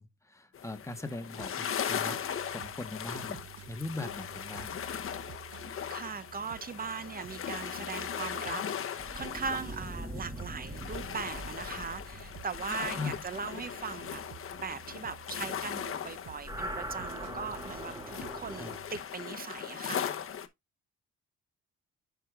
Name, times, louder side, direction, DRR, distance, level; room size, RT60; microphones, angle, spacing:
voice 1, 0.0-2.2 2.5-3.4 3.7-4.8 10.1-10.2 13.0-13.2 18.6-18.7, left 3 dB, 10° left, 1.1 m, -40 dB
sound 1, 0.5-20.5, left 8 dB, 45° left, 0.8 m, -39 dB
sound 2, 1.3-19.0, right 12 dB, 65° right, 0.5 m, -53 dB
voice 2, 5.9-14.2 14.5-20.0, right 5 dB, 30° right, 0.7 m, -39 dB
sound 3, 9.0-14.6 16.2-18.8, equal, 10° right, 1.4 m, -42 dB
11.0 x 4.7 x 2.4 m
cardioid pair, 90°, 30 cm